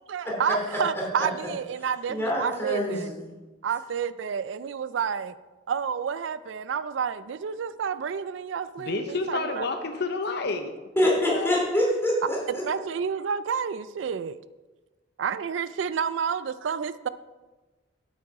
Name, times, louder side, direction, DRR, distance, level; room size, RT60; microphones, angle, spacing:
voice 1, 0.0-3.1 3.6-5.3 5.7-9.7 12.6-14.4 15.2-17.1, right 7 dB, 70° right, 14 dB, 0.4 m, -30 dB
voice 2, 2.1-3.2 11.0-12.6, left 1 dB, 15° left, -3 dB, 2.8 m, -25 dB
voice 3, 8.8-10.7 11.0-11.6, left 3 dB, 60° left, 6 dB, 0.7 m, -30 dB
8.6 x 8.4 x 4.8 m, 1.2 s
head